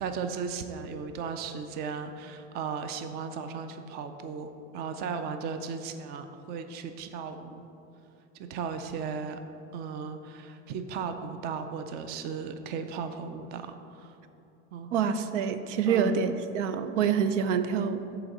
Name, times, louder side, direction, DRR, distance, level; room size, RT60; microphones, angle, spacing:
voice 1, 0.0-7.6 8.3-9.4 9.7-14.2 14.7-14.9 15.9-16.2, right 6 dB, 30° right, 8 dB, 0.4 m, -36 dB
voice 2, 14.9-18.2, right 7 dB, 85° right, 11 dB, 0.6 m, -27 dB
7.8 x 3.9 x 6.0 m, 2.8 s
supercardioid pair, 135°, 36 cm